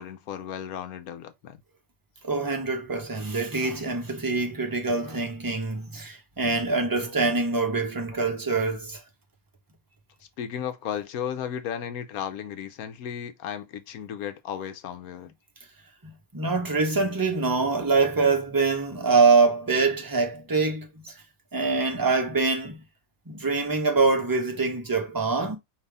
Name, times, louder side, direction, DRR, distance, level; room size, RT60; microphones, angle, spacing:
voice 1, 0.0-1.6 10.4-15.3, left 9 dB, 70° left, 1.0 m, -34 dB
voice 2, 2.2-9.0 16.3-21.1 21.5-22.8 23.3-25.6, right 4 dB, 15° right, 0.8 m, -24 dB
5.4 x 2.9 x 3.4 m
omnidirectional pair, 1.7 m